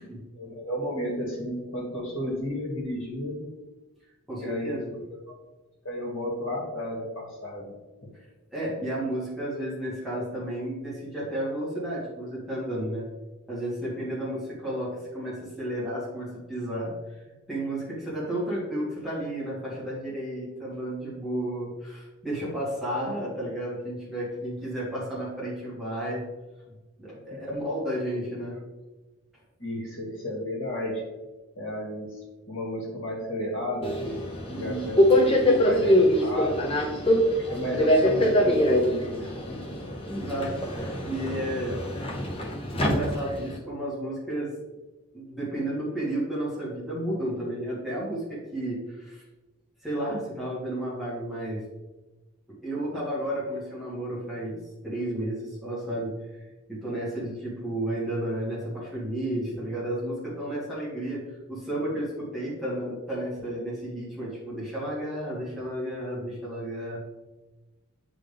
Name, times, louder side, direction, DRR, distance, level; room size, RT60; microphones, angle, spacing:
voice 1, 0.3-3.5 4.4-5.0 5.3-5.4 5.8-7.8 14.1-14.2 27.1-27.5 29.6-31.0 31.6-35.3 35.6-36.7 37.2-39.8, left 1 dB, 65° left, -3 dB, 2.1 m, -33 dB
voice 2, 4.3-4.9 8.1-8.3 8.5-13.1 13.5-17.2 17.5-26.2 27.0-28.6 34.5-34.8 35.4-35.7 40.1-41.8 42.7-44.5 45.1-49.2 49.8-51.6 52.6-54.6 54.8-61.2 61.5-67.0, right 1 dB, ahead, -9 dB, 2.2 m, -32 dB
Subway metro underground, 33.8-43.6, equal, 25° left, 0.8 m, -24 dB
8.9 x 3.8 x 3.5 m, 1.1 s
head